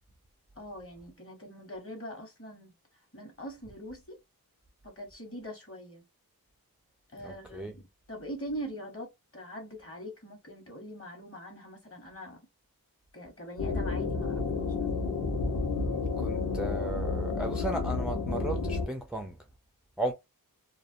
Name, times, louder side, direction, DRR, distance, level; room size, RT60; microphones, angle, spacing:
voice 1, 0.6-2.7 3.1-4.2 4.8-6.1 7.1-7.8 8.1-12.4 13.1-14.9, equal, 40° left, 1.2 m, -43 dB
voice 2, 7.2-7.7 16.2-19.4 20.0-20.1, right 1 dB, 5° right, 0.3 m, -35 dB
sound 1, 13.6-18.9, left 4 dB, 65° left, 0.9 m, -31 dB
2.4 x 2.2 x 2.6 m
wide cardioid pair, 90°, 36 cm